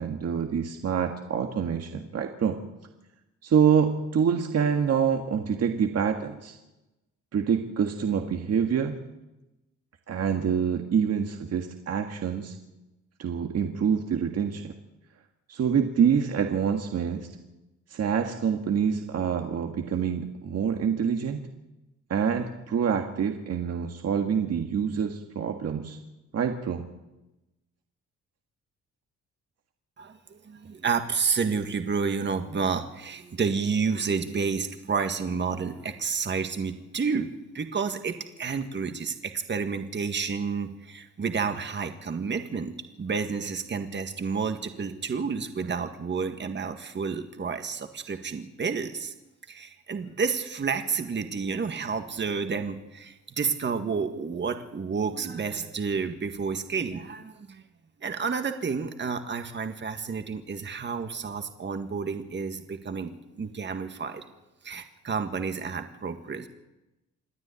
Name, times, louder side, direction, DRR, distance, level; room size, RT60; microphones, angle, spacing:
voice 1, 0.0-2.6 3.4-6.6 7.3-9.0 10.1-12.6 13.2-14.7 15.5-17.3 17.9-21.5 22.1-26.0 26.3-26.9, right 7 dB, 55° right, 4 dB, 1.8 m, -26 dB
voice 2, 30.0-49.1 49.5-57.6 58.0-64.2 64.6-66.5, right 5 dB, 35° right, 7 dB, 1.9 m, -30 dB
27.5 x 9.8 x 9.8 m, 0.99 s
cardioid pair, 90°, 30 cm